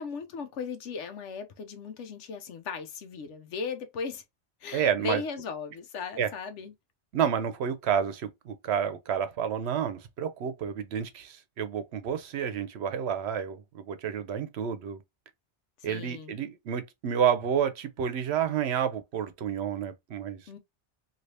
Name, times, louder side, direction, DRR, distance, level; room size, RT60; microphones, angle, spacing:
voice 1, 0.0-4.2 4.6-6.7 15.8-16.3 20.5-20.6, left 5 dB, 85° left, 1.0 m, -37 dB
voice 2, 4.7-5.2 6.2-6.3 7.1-15.0 15.8-20.4, right 8 dB, 70° right, 0.8 m, -30 dB
3.2 x 2.7 x 2.7 m
omnidirectional pair, 1.2 m